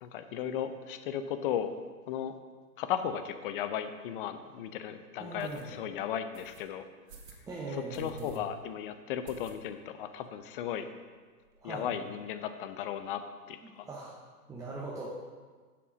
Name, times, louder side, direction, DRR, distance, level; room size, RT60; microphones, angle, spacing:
voice 1, 0.0-1.7 2.1-2.4 2.8-6.9 7.7-10.9 11.6-13.2 13.5-13.9, left 9 dB, 35° left, 10 dB, 0.7 m, -35 dB
sound 1, 4.0-4.1 4.6-4.7 5.4-5.7 6.3-6.6 7.1-7.4 7.9-8.4 8.7-8.8 9.2-9.9 10.2-10.3 10.6-10.7 10.9-11.6, right 5 dB, 85° right, 1.8 m, -53 dB
voice 2, 5.2-5.7 7.5-8.4 11.6-11.9 13.6-14.1 14.5-15.0, right 3 dB, 5° right, -6 dB, 0.7 m, -40 dB
8.4 x 7.6 x 5.1 m, 1.5 s
hypercardioid pair, 130°, 49 cm